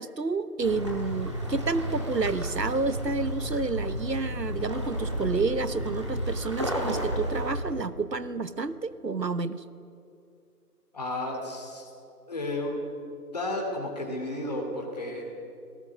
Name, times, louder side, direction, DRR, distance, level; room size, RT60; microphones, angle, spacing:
voice 1, 0.0-9.6, right 4 dB, 85° right, 14 dB, 1.2 m, -30 dB
sound 1, 0.6-7.6, equal, 20° right, 1.7 m, -32 dB
voice 2, 10.9-11.9 12.3-12.8 13.3-15.3, left 1 dB, 25° left, 0 dB, 2.8 m, -32 dB
29.0 x 18.5 x 6.4 m, 2.6 s
figure-of-eight pair, 165°, 48 cm